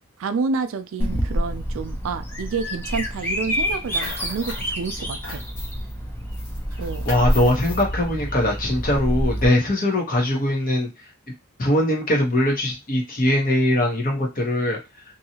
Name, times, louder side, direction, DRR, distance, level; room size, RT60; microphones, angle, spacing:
voice 1, 0.2-5.4 6.8-7.1, right 5 dB, 65° right, 0.3 m, -29 dB
Bird vocalization bird call bird song, 1.0-9.4, equal, 10° left, 0.5 m, -27 dB
sound 1, 3.7-4.7 5.0-5.9 6.3-7.9, left 3 dB, 80° left, 1.3 m, -39 dB
voice 2, 7.0-10.9 11.6-14.8, left 1 dB, 40° left, 0.9 m, -21 dB
2.7 x 2.4 x 2.8 m
head